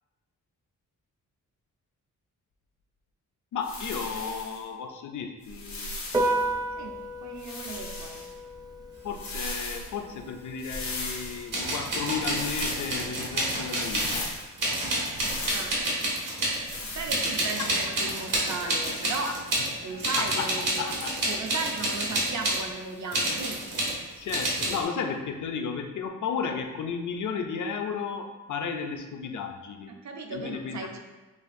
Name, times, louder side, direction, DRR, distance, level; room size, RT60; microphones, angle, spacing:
voice 1, 3.5-5.9 9.0-14.2 19.2-19.3 19.8-20.5 20.8-21.4 24.2-29.9 30.3-30.8, left 6 dB, 65° left, 5 dB, 0.5 m, -34 dB
sound 1, 3.6-4.6 5.4-6.4 7.4-8.3 9.1-9.9 10.6-11.5 12.2-13.0 13.7-14.5 15.1-15.8 16.6-17.2, left 2 dB, 90° left, 1.4 m, -37 dB
Piano, 6.0-14.0, right 2 dB, 15° right, 0.4 m, -35 dB
voice 2, 6.8-8.3 15.5-15.7 16.8-19.3 19.8-21.0 21.3-23.6 30.0-31.0, right 4 dB, 60° right, 3 dB, 0.6 m, -36 dB
sound 2, 10.7-10.8 11.5-14.3 14.6-16.8 17.1-19.7 20.0-22.6 23.1-24.0 24.3-24.8, right 1 dB, 75° right, 1.3 m, -29 dB
7.2 x 2.4 x 2.5 m, 1.2 s
wide cardioid pair, 155°, 33 cm